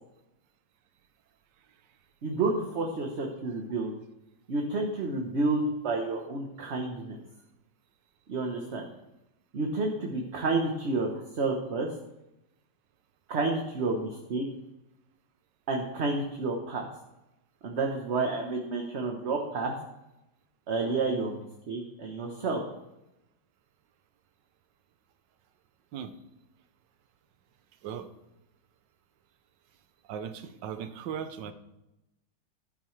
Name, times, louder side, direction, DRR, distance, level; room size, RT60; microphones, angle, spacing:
voice 1, 2.2-3.9 4.5-7.2 8.3-8.9 9.5-11.9 13.3-14.4 15.7-16.9 17.6-19.7 20.7-22.6, right 3 dB, 45° right, 1 dB, 1.1 m, -30 dB
voice 2, 30.0-31.5, right 8 dB, 80° right, 10 dB, 1.5 m, -37 dB
12.0 x 9.5 x 3.2 m, 0.90 s
omnidirectional pair, 1.9 m